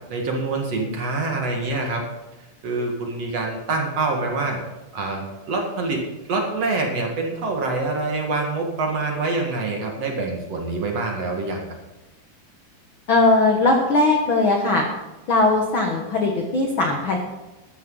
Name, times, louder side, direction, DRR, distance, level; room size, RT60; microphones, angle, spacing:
voice 1, 0.1-2.0 2.6-4.6 4.9-11.6, right 3 dB, 50° right, 1 dB, 2.4 m, -25 dB
voice 2, 13.1-14.9 15.3-17.2, left 2 dB, 70° left, 2 dB, 1.2 m, -19 dB
14.0 x 12.5 x 3.9 m, 1.1 s
omnidirectional pair, 4.4 m